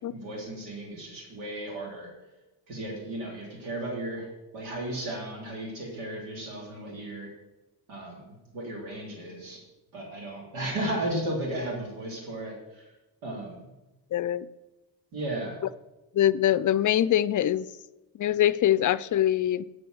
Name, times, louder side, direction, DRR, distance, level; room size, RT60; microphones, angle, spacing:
voice 1, 0.1-2.1 2.7-4.3 4.5-7.3 7.9-9.6 9.9-12.9 13.2-13.7 15.1-15.6, right 1 dB, 90° right, -1 dB, 2.9 m, -35 dB
voice 2, 14.1-14.5 16.1-17.7 18.2-19.7, left 11 dB, 45° left, 17 dB, 0.5 m, -23 dB
6.8 x 6.7 x 7.8 m, 1.0 s
supercardioid pair, 60°, 45 cm